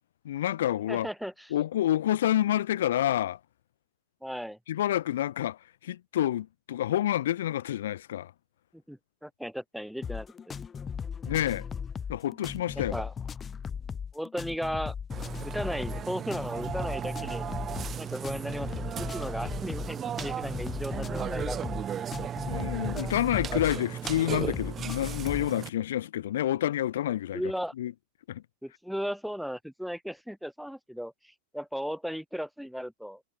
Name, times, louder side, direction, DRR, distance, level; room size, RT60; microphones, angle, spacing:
voice 1, 0.2-1.1 1.5-3.4 4.7-8.3 11.3-11.6 12.1-12.9 22.5-27.4 27.8-27.9 28.3-28.4, left 12 dB, 60° left, 1.4 m, -28 dB
voice 2, 0.9-1.5 4.2-4.6 8.9-10.5 12.8-13.1 14.1-14.9 15.4-17.4 18.0-21.8 27.3-27.7 28.6-33.2, equal, ahead, 0.7 m, -36 dB
sound 1, 10.0-25.5, left 6 dB, 20° left, 1.1 m, -37 dB
Burping eructation, 15.1-25.7, right 9 dB, 25° right, 1.1 m, -36 dB
figure-of-eight pair, 90°, 0 cm